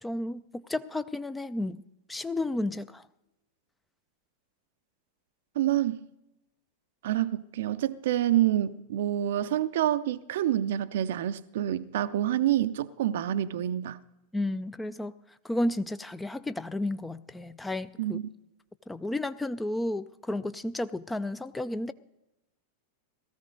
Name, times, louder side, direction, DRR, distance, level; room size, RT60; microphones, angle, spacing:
voice 1, 0.0-1.8 2.1-3.1 14.3-15.1 15.4-18.2 18.9-21.9, left 1 dB, 10° left, 0.4 m, -32 dB
voice 2, 5.6-6.0 7.0-14.0 18.0-18.3, right 12 dB, 55° right, 0.5 m, -27 dB
18.0 x 14.0 x 3.9 m
figure-of-eight pair, 90°, 0 cm